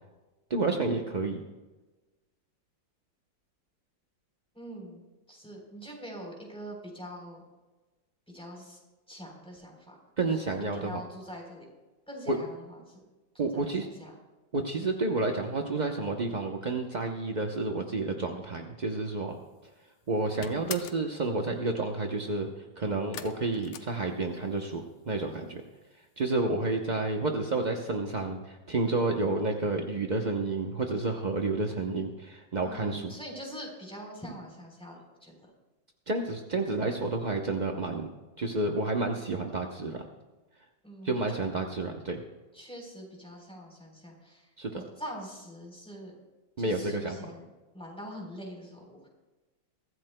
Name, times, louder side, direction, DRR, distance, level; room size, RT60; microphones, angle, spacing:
voice 1, 0.5-1.4 10.2-11.0 12.3-12.4 13.4-13.9 14.5-19.4 20.1-25.6 26.2-33.1 36.1-38.1 38.4-40.1 41.0-42.2 44.6-44.8 46.6-47.2, right 3 dB, 45° right, 2 dB, 0.5 m, -30 dB
voice 2, 4.5-7.4 8.3-8.8 9.1-11.7 12.1-13.0 13.3-14.1 20.5-20.8 32.6-35.5 40.8-41.5 42.5-46.1 46.6-47.5 47.7-49.1, equal, 5° left, -1 dB, 3.6 m, -44 dB
sound 1, 19.4-19.8 20.1-21.1 23.1-24.6 24.9-25.5 25.8-25.9 26.3-26.4, left 9 dB, 75° left, 1.5 m, -43 dB
23.0 x 14.5 x 2.2 m, 1.2 s
omnidirectional pair, 2.0 m